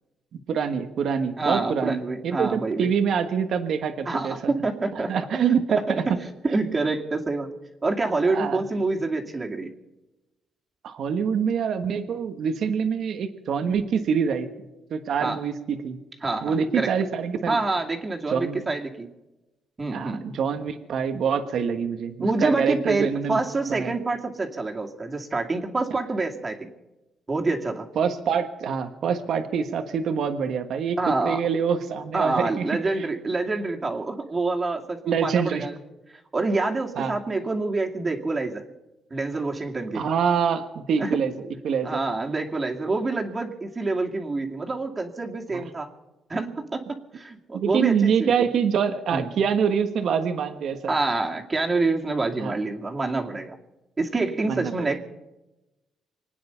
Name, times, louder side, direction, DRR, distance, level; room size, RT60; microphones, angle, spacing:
voice 1, 0.5-4.3 4.9-6.0 8.2-8.6 10.8-14.5 14.9-16.0 16.4-17.6 18.3-18.6 19.9-23.4 23.7-23.9 27.9-31.0 31.2-32.7 33.0-33.1 35.1-35.7 37.0-37.1 39.9-41.3 41.6-42.0 45.5-45.6 47.5-50.9 52.4-52.5 54.5-55.0, right 7 dB, 65° right, 8 dB, 1.3 m, -25 dB
voice 2, 1.4-2.9 4.1-5.1 5.7-6.1 6.4-7.5 7.8-9.7 15.2-15.4 16.2-16.9 17.5-19.1 19.8-20.3 22.2-26.7 27.3-27.9 31.0-31.4 32.1-35.7 36.3-38.6 39.1-40.0 41.0-41.2 41.8-45.9 46.3-48.3 49.1-49.3 50.9-53.5 54.0-55.0, right 3 dB, 30° right, 2 dB, 2.3 m, -27 dB
25.5 x 9.4 x 5.6 m, 1.0 s
cardioid pair, 90°, 0 cm